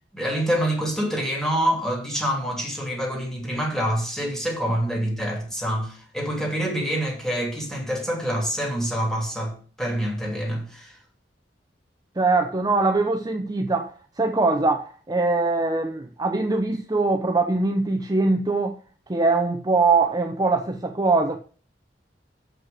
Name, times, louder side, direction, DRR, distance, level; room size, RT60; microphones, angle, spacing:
voice 1, 0.1-11.0, equal, 5° left, 2.8 m, -26 dB
voice 2, 12.2-18.8 19.1-21.4, right 3 dB, 20° right, 0.7 m, -22 dB
7.5 x 5.4 x 7.5 m
head